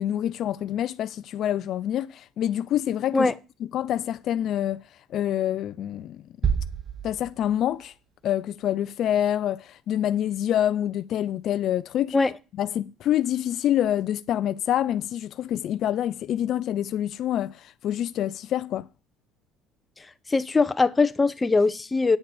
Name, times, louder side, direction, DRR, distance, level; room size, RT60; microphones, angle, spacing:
voice 1, 0.0-3.3 3.7-4.8 5.1-6.2 7.0-7.9 8.2-12.2 12.6-18.9, left 11 dB, 60° left, 0.6 m, -26 dB
sound 1, 6.4-8.2, right 7 dB, 35° right, 0.8 m, -29 dB
voice 2, 20.3-22.2, left 3 dB, 20° left, 0.9 m, -21 dB
9.5 x 6.5 x 7.1 m
supercardioid pair, 80°, 0 cm